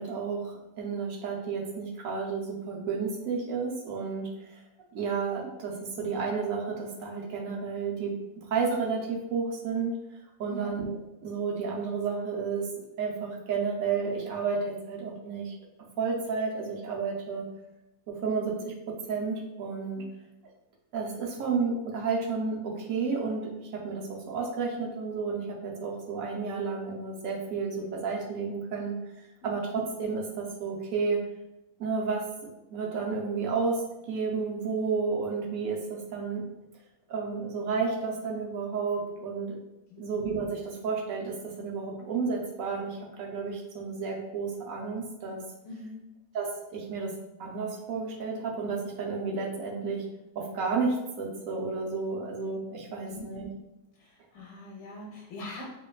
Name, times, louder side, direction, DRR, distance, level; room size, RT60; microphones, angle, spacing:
voice 1, 0.0-4.6 4.9-8.1 8.5-10.0 10.4-10.9 11.2-12.7 13.0-15.5 16.0-17.5 18.1-20.0 20.9-29.0 29.4-31.2 31.8-32.2 32.7-33.8 34.1-36.4 37.1-39.6 40.0-45.4 46.3-47.1 47.4-50.0 50.4-53.5, right 5 dB, 70° right, -1 dB, 1.0 m, -31 dB
voice 2, 45.6-46.1 53.0-53.5 53.9-55.7, left 1 dB, 90° left, -2 dB, 1.1 m, -43 dB
4.5 x 2.2 x 2.3 m, 0.93 s
omnidirectional pair, 1.6 m